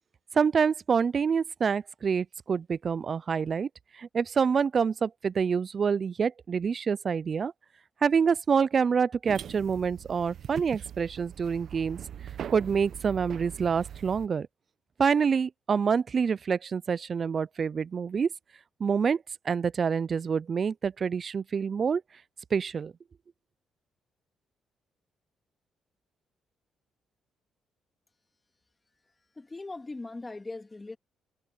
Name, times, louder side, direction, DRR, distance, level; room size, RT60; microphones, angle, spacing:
voice 1, 0.3-3.7 4.0-7.5 8.0-12.0 12.5-14.5 15.0-18.3 18.8-22.0 22.5-22.9, right 6 dB, 45° right, 0.4 m, -27 dB
sound 1, 9.3-14.3, right 9 dB, 60° right, 1.1 m, -41 dB
voice 2, 29.4-31.0, left 2 dB, 20° left, 2.7 m, -40 dB
cardioid pair, 90°, 0 cm